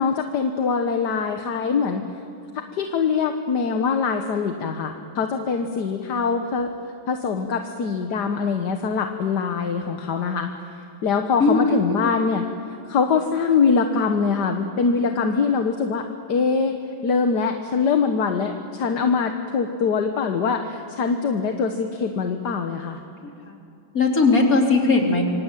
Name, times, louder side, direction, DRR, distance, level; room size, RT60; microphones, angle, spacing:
voice 1, 0.0-2.0 2.7-6.7 7.1-10.5 11.0-12.5 12.9-16.8 17.0-23.0, left 5 dB, 55° left, 5 dB, 1.6 m, -23 dB
voice 2, 11.4-12.1 23.5-23.6 23.9-25.2, left 3 dB, 40° left, 0 dB, 3.9 m, -19 dB
27.0 x 24.0 x 9.1 m, 2.6 s
omnidirectional pair, 2.4 m